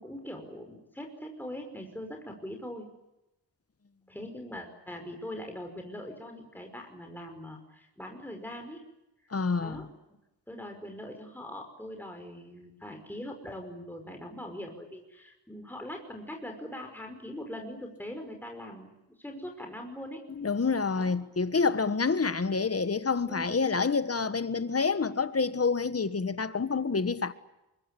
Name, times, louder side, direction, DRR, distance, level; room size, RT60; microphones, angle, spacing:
voice 1, 0.0-2.9 4.1-8.9 9.2-9.3 9.6-9.9 10.5-18.9 19.2-20.2 21.0-21.1 21.8-22.1 23.3-23.7, left 1 dB, 5° left, 5.4 m, -42 dB
voice 2, 9.3-9.9 20.4-27.3, left 4 dB, 35° left, 1.6 m, -28 dB
24.0 x 22.5 x 10.0 m
cardioid pair, 65°, 42 cm